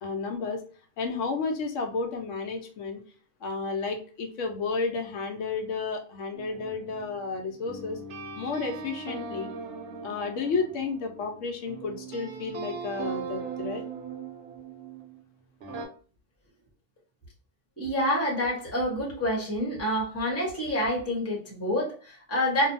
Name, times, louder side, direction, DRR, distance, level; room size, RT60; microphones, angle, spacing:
voice 1, 0.0-0.6 1.0-3.0 3.4-8.0 8.3-9.5 10.0-13.8, left 4 dB, 90° left, 4 dB, 1.0 m, -32 dB
sound 1, 6.3-15.2 15.6-15.9, right 5 dB, 70° right, 0.9 m, -39 dB
voice 2, 17.8-22.7, equal, 15° left, -4 dB, 0.9 m, -27 dB
2.6 x 2.3 x 2.6 m, 0.40 s
omnidirectional pair, 1.2 m